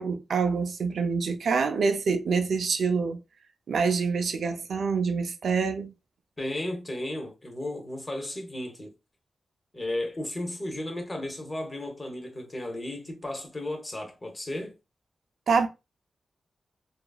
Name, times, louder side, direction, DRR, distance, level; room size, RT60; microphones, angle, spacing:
voice 1, 0.0-3.2 3.7-5.9 15.5-15.7, right 5 dB, 80° right, 0.4 m, -26 dB
voice 2, 6.4-8.9 9.7-14.8, left 1 dB, 20° left, 0.7 m, -34 dB
2.9 x 2.4 x 2.3 m
wide cardioid pair, 130°, 0 cm